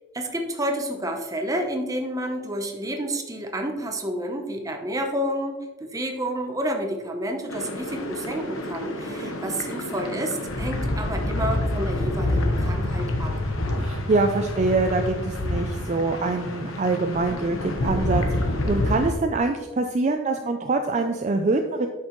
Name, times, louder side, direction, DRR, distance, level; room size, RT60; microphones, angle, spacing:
voice 1, 0.1-13.3, right 1 dB, 15° right, 4 dB, 0.8 m, -30 dB
sound 1, 7.5-19.1, left 1 dB, 90° left, 1.1 m, -27 dB
voice 2, 13.8-21.9, right 3 dB, 35° right, 5 dB, 0.4 m, -24 dB
8.6 x 6.6 x 3.1 m, 1.2 s
head